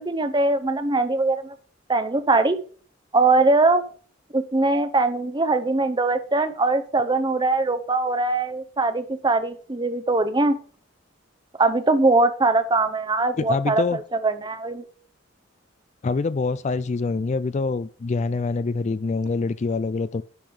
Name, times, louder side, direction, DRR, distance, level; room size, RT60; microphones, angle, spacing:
voice 1, 0.0-1.5 1.9-2.6 3.1-3.9 4.3-10.6 11.6-14.8, right 3 dB, 25° right, 0.8 m, -21 dB
voice 2, 13.4-14.0 16.0-20.2, left 4 dB, 35° left, 0.3 m, -25 dB
11.0 x 5.2 x 5.4 m
head